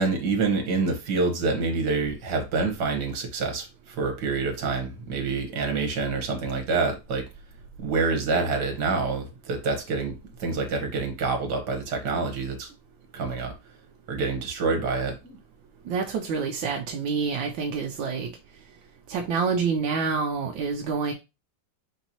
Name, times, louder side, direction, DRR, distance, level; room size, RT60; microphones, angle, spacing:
voice 1, 0.0-7.2 7.8-10.1 10.4-12.7 13.1-13.5 14.1-15.4, right 4 dB, 60° right, 1.7 m, -27 dB
voice 2, 15.9-18.3 19.1-21.1, right 5 dB, 80° right, 1.3 m, -27 dB
4.5 x 4.0 x 2.9 m
omnidirectional pair, 2.1 m